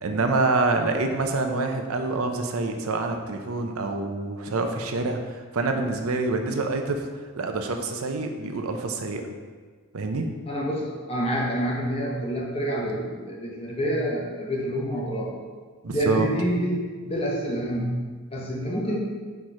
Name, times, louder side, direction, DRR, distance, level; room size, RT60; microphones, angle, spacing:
voice 1, 0.0-7.1 7.4-9.2 9.9-10.3 15.8-16.3, right 3 dB, 90° right, 5 dB, 0.6 m, -26 dB
voice 2, 10.5-15.3 15.9-19.0, equal, 25° left, -2 dB, 0.9 m, -27 dB
4.6 x 4.4 x 4.9 m, 1.5 s
head